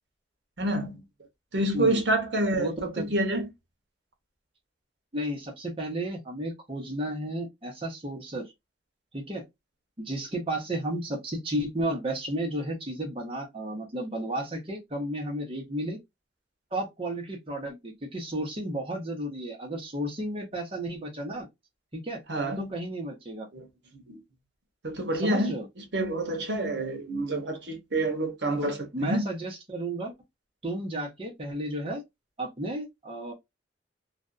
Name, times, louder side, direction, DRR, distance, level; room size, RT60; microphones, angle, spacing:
voice 1, 0.6-1.0 1.5-3.5 22.3-22.7 23.5-23.7 23.9-24.2 24.8-29.3, right 1 dB, 70° right, 0.8 m, -28 dB
voice 2, 1.7-2.0 2.6-3.1 5.1-8.5 9.1-9.4 10.0-16.0 16.7-21.5 21.9-22.2 22.6-23.5 25.2-25.7 28.6-30.1 30.6-32.0 32.4-33.3, right 1 dB, 30° right, 0.9 m, -33 dB
2.5 x 2.2 x 2.5 m
head